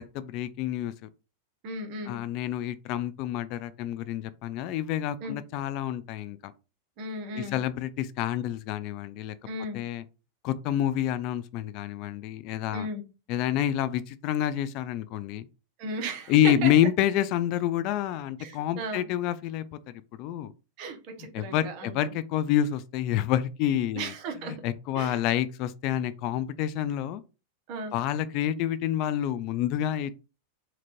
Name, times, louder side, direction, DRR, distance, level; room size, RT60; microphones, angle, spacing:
voice 1, 0.1-1.1 2.1-6.5 7.3-9.4 9.7-10.0 10.4-12.9 13.3-15.5 16.3-19.6 20.1-20.5 21.3-24.1 24.4-27.2 27.9-30.1, left 11 dB, 45° left, 0.3 m, -28 dB
voice 2, 1.6-2.2 5.2-5.4 7.0-7.6 9.4-9.8 12.7-13.0 15.8-16.3 16.6-16.7 18.4-19.0 20.8-22.1 24.0-24.5 24.9-25.2 27.7-27.9, right 1 dB, 45° right, 1.1 m, -36 dB
4.3 x 2.5 x 3.1 m
supercardioid pair, 150°, 0 cm